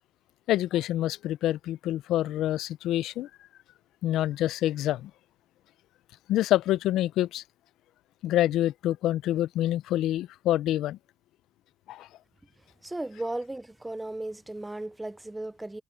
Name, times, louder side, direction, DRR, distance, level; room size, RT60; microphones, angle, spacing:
voice 1, 0.5-3.3 4.0-5.1 6.3-7.4 8.2-11.0 11.9-12.1, left 13 dB, 70° left, 0.4 m, -26 dB
voice 2, 12.8-15.8, right 2 dB, 10° right, 0.5 m, -35 dB
cardioid pair, 120°, 0 cm